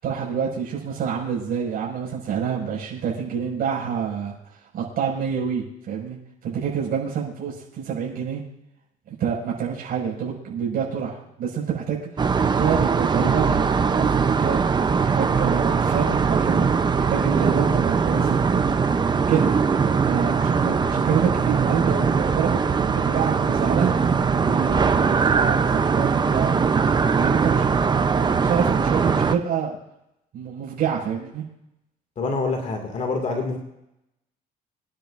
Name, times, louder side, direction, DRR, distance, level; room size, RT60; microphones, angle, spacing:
voice 1, 0.0-6.2 6.4-8.4 9.1-14.6 15.0-16.7 17.0-18.8 19.3-19.5 20.0-24.0 24.4-26.8 27.2-27.7 27.9-29.8 30.3-31.4, right 7 dB, 60° right, -3 dB, 5.8 m, -27 dB
sound 1, 12.2-29.4, right 5 dB, 25° right, 0.7 m, -21 dB
voice 2, 32.2-33.6, left 3 dB, 45° left, 2 dB, 2.3 m, -26 dB
26.0 x 10.0 x 2.6 m, 0.86 s
cardioid pair, 110°, 17 cm